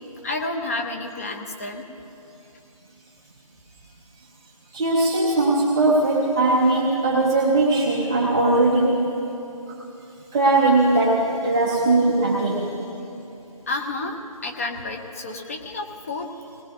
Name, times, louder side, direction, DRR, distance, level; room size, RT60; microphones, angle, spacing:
voice 1, 0.2-1.8 13.7-16.3, left 2 dB, 25° left, 2 dB, 0.8 m, -30 dB
voice 2, 4.7-9.1 10.3-12.7, right 2 dB, 10° right, -6 dB, 0.6 m, -19 dB
19.5 x 19.5 x 2.7 m, 2.9 s
figure-of-eight pair, 165°, 19 cm